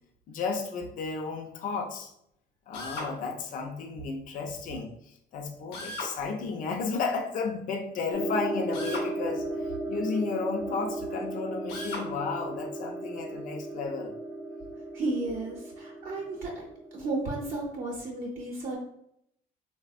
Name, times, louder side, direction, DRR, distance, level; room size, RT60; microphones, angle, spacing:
voice 1, 0.3-2.1 2.7-4.9 5.3-14.2, left 4 dB, 50° left, 3 dB, 0.5 m, -33 dB
Drill, 2.7-3.1 5.7-6.1 8.7-9.1 11.7-12.1, left 2 dB, 90° left, 0.7 m, -37 dB
sound 1, 8.1-17.6, right 2 dB, 10° right, 0.4 m, -36 dB
voice 2, 14.9-16.6 16.9-18.8, right 2 dB, 55° right, -3 dB, 0.7 m, -33 dB
3.3 x 2.1 x 2.4 m, 0.74 s
cardioid pair, 110°, 17 cm